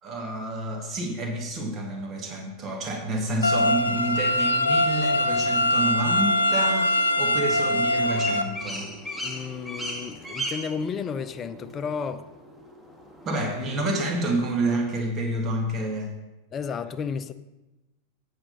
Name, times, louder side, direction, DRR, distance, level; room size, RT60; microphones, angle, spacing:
voice 1, 0.0-8.9 13.2-16.1, right 1 dB, 30° right, 2 dB, 1.7 m, -29 dB
sound 1, 3.4-8.4, left 1 dB, 85° left, 0.6 m, -23 dB
sound 2, 7.7-13.9, left 1 dB, 5° right, 1.8 m, -37 dB
voice 2, 9.2-12.3 13.5-13.7 16.5-17.3, left 6 dB, 30° left, 11 dB, 0.6 m, -32 dB
8.7 x 7.3 x 5.3 m, 1.0 s
figure-of-eight pair, 90°, 0 cm